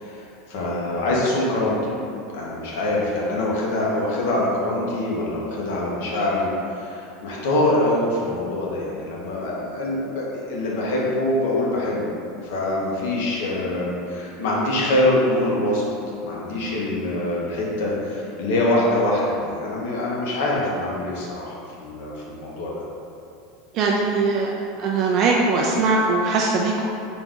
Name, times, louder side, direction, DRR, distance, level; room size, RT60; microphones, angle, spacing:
voice 1, 0.0-2.0 2.3-12.1 12.4-15.9 16.2-22.7, left 1 dB, 75° left, -4 dB, 0.9 m, -24 dB
voice 2, 23.7-24.5 24.8-26.8, right 3 dB, 45° right, -2 dB, 0.3 m, -20 dB
3.9 x 2.4 x 3.7 m, 2.7 s
supercardioid pair, 140°, 0 cm